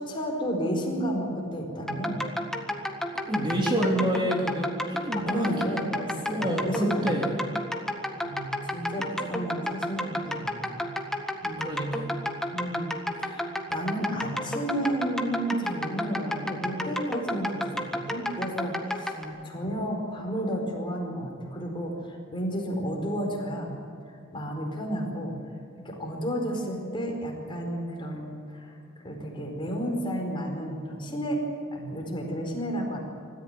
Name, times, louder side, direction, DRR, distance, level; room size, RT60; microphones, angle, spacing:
voice 1, 0.0-2.2 5.1-7.3 8.2-10.9 11.4-11.8 12.5-23.7 24.3-25.4 25.8-31.4 31.7-33.0, equal, 25° left, 1 dB, 4.7 m, -32 dB
sound 1, 1.9-19.2, left 1 dB, ahead, 1.7 m, -32 dB
voice 2, 3.3-5.7 6.2-7.3 11.6-12.2 19.1-19.8, right 1 dB, 25° right, -1 dB, 3.0 m, -28 dB
25.5 x 14.5 x 9.2 m, 2.6 s
head